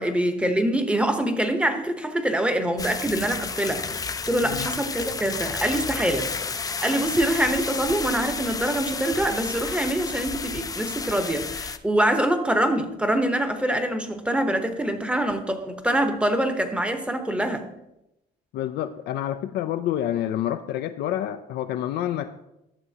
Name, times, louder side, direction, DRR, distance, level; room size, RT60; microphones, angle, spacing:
voice 1, 0.0-4.0 4.3-17.6, right 1 dB, 5° right, 7 dB, 0.9 m, -25 dB
sound 1, 2.8-11.8, left 5 dB, 20° left, 0.5 m, -31 dB
voice 2, 18.5-22.4, left 11 dB, 75° left, 7 dB, 0.4 m, -28 dB
12.5 x 6.9 x 2.8 m, 0.88 s
cardioid pair, 110°, 17 cm